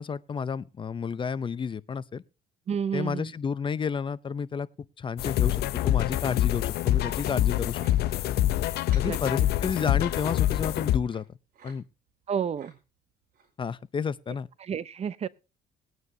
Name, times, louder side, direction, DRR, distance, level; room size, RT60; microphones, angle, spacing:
voice 1, 0.0-2.2 2.9-4.7 5.0-8.1 8.9-11.2 11.6-11.8 13.6-14.5, left 6 dB, 30° left, 0.6 m, -31 dB
voice 2, 2.7-3.3 9.0-9.2 12.3-12.7 14.6-15.3, right 7 dB, 40° right, 0.7 m, -30 dB
sound 1, 5.2-11.0, left 13 dB, 70° left, 0.6 m, -25 dB
sound 2, 6.6-7.3 7.7-8.0 8.7-9.1 9.5-10.1 11.1-11.3 11.5-11.8 12.1-12.7 13.3-13.5 14.0-14.1, right 5 dB, 55° right, 5.5 m, -52 dB
20.0 x 9.5 x 2.7 m
cardioid pair, 110°, 17 cm